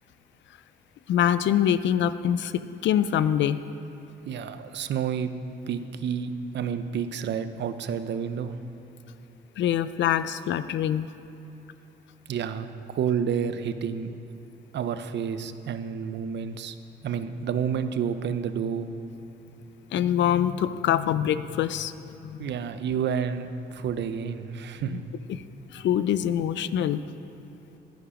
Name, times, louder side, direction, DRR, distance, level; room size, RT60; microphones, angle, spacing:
voice 1, 1.1-3.6 9.6-11.1 19.9-21.9 22.2-22.5 24.9-25.0 25.3-25.4 25.7-27.0, left 10 dB, 65° left, 14 dB, 0.4 m, -24 dB
voice 2, 4.3-5.3 5.7-8.6 12.3-12.7 12.9-14.1 14.7-16.7 17.0-18.9 22.4-25.1, right 7 dB, 60° right, 11 dB, 0.7 m, -30 dB
11.5 x 10.0 x 4.9 m, 2.9 s
cardioid pair, 90°, 20 cm